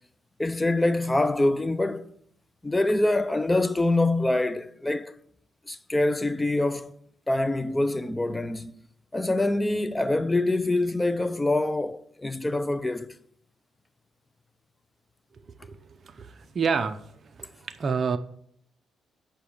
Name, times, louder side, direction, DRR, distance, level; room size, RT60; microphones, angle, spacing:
voice 1, 0.4-2.1 2.6-5.1 5.7-7.0 7.3-8.7 9.1-13.1, left 2 dB, 15° left, 0.5 m, -25 dB
voice 2, 16.0-17.0 17.4-18.2, right 5 dB, 45° right, 0.6 m, -28 dB
8.6 x 5.7 x 6.4 m
cardioid pair, 90°, 0 cm